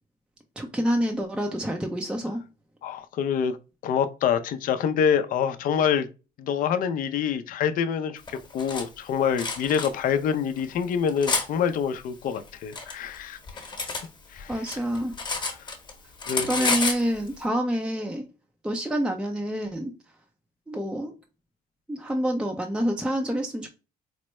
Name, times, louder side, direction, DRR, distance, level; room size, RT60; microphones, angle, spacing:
voice 1, 0.6-2.4 14.5-15.1 16.4-18.3 18.6-19.9 20.7-21.1 21.9-23.7, equal, 5° right, 0.4 m, -27 dB
voice 2, 2.8-3.6 3.8-6.1 6.4-13.4 14.3-14.7 16.3-16.7, left 7 dB, 55° left, 0.4 m, -26 dB
Cutlery silverware, 8.3-8.8 9.4-9.9 10.6-11.5 12.3-14.1 14.4-15.9 16.2-17.0, left 4 dB, 25° left, 1.0 m, -29 dB
4.4 x 2.1 x 3.0 m
cardioid pair, 110°, 17 cm